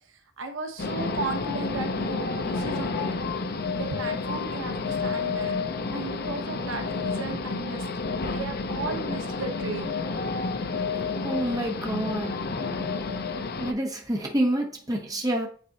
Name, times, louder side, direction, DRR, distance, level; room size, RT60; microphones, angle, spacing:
voice 1, 0.1-3.2 3.7-5.6 5.9-9.9 10.9-11.0, right 3 dB, 80° right, 1.0 m, -35 dB
sound 1, 0.8-13.7, left 4 dB, 55° left, 0.6 m, -30 dB
voice 2, 11.2-12.5 13.6-15.5, right 1 dB, 20° right, 1.1 m, -28 dB
8.3 x 4.0 x 2.9 m
head